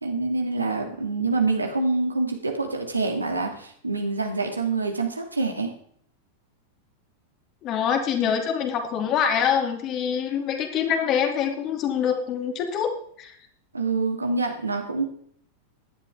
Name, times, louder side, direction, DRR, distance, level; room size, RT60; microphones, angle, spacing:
voice 1, 0.0-5.7 13.7-15.1, right 3 dB, 80° right, 3 dB, 2.3 m, -26 dB
voice 2, 7.6-12.9 13.2-13.3, left 8 dB, 35° left, 4 dB, 2.6 m, -25 dB
16.5 x 11.5 x 3.6 m, 0.62 s
figure-of-eight pair, 90°, 0 cm